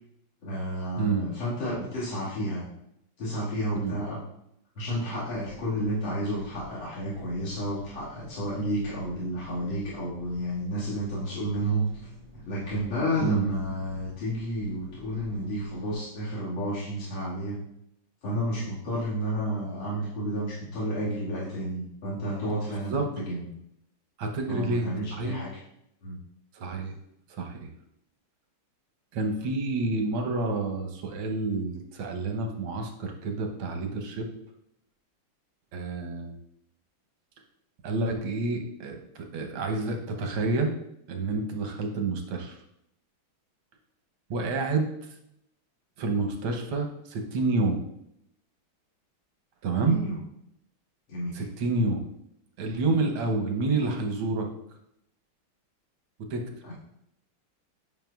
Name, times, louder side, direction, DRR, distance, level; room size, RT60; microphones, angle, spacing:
voice 1, 0.4-2.6 3.2-4.2 4.8-11.9 12.3-17.6 18.2-23.5 24.5-25.6 26.0-26.2 49.8-50.2 51.1-51.4 56.7-56.8, equal, 75° left, -9 dB, 2.7 m, -31 dB
voice 2, 1.0-1.3 3.7-4.0 13.2-13.5 22.6-23.1 24.2-25.4 26.6-27.0 27.3-27.7 29.1-34.3 35.7-36.4 37.8-40.8 41.1-42.6 44.3-44.9 46.0-47.8 49.6-50.0 51.4-52.0 52.6-54.5 56.3-56.4, right 3 dB, 90° right, 3 dB, 1.7 m, -29 dB
Engine, 5.3-15.9, equal, 60° right, 1.7 m, -50 dB
9.0 x 5.8 x 2.3 m, 0.78 s
omnidirectional pair, 2.2 m